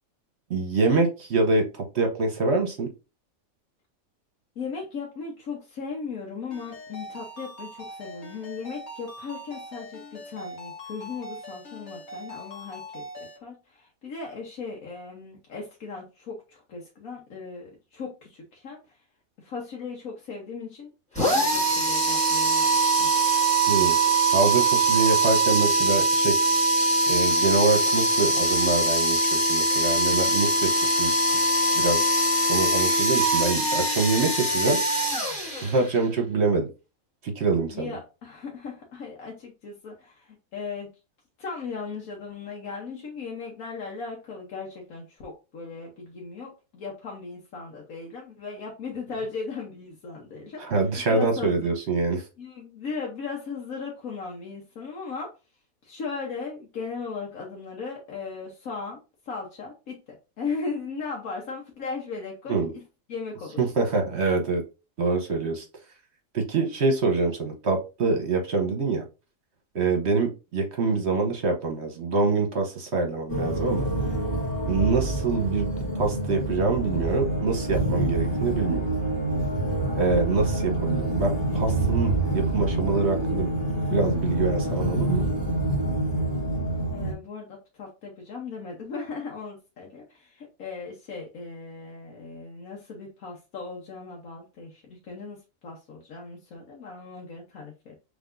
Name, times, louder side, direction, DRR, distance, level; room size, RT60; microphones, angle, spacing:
voice 1, 0.5-2.9 23.7-23.9 24.3-26.4 27.1-31.2 31.7-32.0 32.5-34.8 35.6-36.7 37.2-37.9 50.6-52.2 62.5-62.7 63.6-64.6 65.0-65.6 66.3-69.0 69.7-73.9 74.7-78.9 80.0-83.5 83.9-85.2, right 3 dB, 55° right, 3 dB, 1.1 m, -25 dB
voice 2, 4.5-13.0 13.4-19.0 19.4-23.4 37.7-40.9 41.4-50.6 51.1-51.7 52.4-55.3 55.8-62.8 63.1-63.6 86.9-98.0, left 4 dB, 85° left, -1 dB, 1.5 m, -37 dB
Ringtone, 6.5-13.4, equal, 55° left, 1.6 m, -42 dB
sound 1, 21.1-36.0, right 2 dB, 5° left, 1.6 m, -22 dB
sound 2, 73.3-87.1, right 1 dB, 40° left, 1.8 m, -27 dB
5.7 x 3.4 x 2.6 m, 0.29 s
omnidirectional pair, 1.4 m